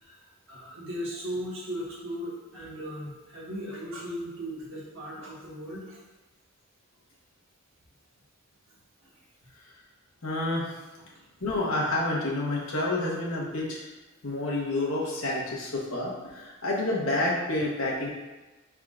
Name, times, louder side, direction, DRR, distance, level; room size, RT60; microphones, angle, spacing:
voice 1, 0.0-6.0 9.0-9.1, equal, 70° right, -5 dB, 1.4 m, -37 dB
voice 2, 10.2-10.7 11.4-13.8 14.2-18.1, left 2 dB, 80° left, -3 dB, 1.1 m, -29 dB
5.7 x 3.6 x 2.4 m, 1.2 s
head